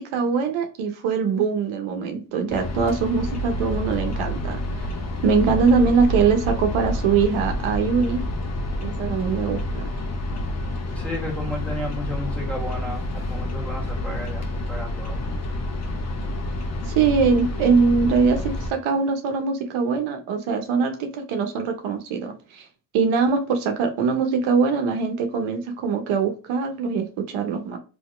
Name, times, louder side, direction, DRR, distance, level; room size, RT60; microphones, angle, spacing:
voice 1, 0.0-4.9 5.2-8.2 8.8-9.9 16.8-22.7 22.9-27.8, right 5 dB, 75° right, 5 dB, 0.8 m, -22 dB
sound 1, 2.5-18.7, left 1 dB, 35° left, 0.9 m, -28 dB
voice 2, 10.9-15.2, left 1 dB, 5° left, -4 dB, 1.7 m, -33 dB
2.8 x 2.8 x 3.2 m, 0.35 s
supercardioid pair, 65°, 48 cm